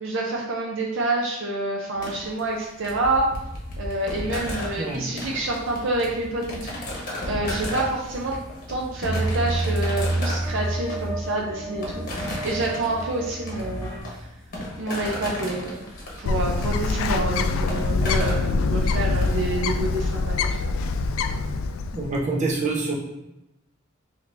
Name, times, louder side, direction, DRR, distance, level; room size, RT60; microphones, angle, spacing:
voice 1, 0.0-3.3 3.8-8.4 8.7-12.0 12.4-13.9 14.8-15.9 16.2-20.6, right 2 dB, 65° right, -1 dB, 0.6 m, -28 dB
sound 1, 2.0-19.3, left 1 dB, 45° left, 1.2 m, -35 dB
sound 2, 9.0-14.0, right 2 dB, 20° left, 0.7 m, -29 dB
Bird, 16.3-22.2, left 3 dB, 75° left, 0.3 m, -24 dB
voice 2, 21.9-22.9, right 3 dB, 35° right, -3 dB, 0.8 m, -26 dB
4.0 x 2.9 x 3.3 m, 0.91 s
head